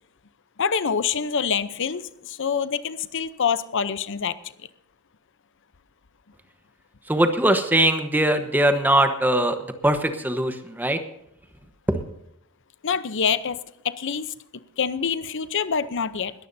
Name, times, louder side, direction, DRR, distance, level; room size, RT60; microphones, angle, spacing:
voice 1, 0.6-4.4 12.8-13.6 13.8-14.3 14.8-16.3, left 6 dB, 60° left, 14 dB, 0.7 m, -25 dB
voice 2, 7.1-11.0 11.9-12.0, right 1 dB, 10° right, 7 dB, 1.1 m, -21 dB
21.0 x 14.5 x 2.7 m, 0.78 s
head